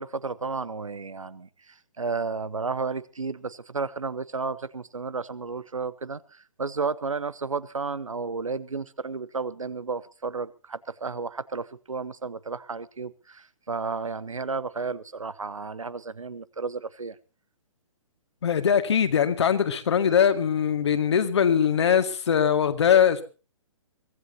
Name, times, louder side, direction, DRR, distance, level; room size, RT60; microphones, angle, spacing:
voice 1, 0.0-17.2, right 4 dB, 75° right, 0.9 m, -32 dB
voice 2, 18.4-23.2, left 8 dB, 55° left, 2.1 m, -21 dB
23.5 x 15.0 x 2.9 m
figure-of-eight pair, 125°, 17 cm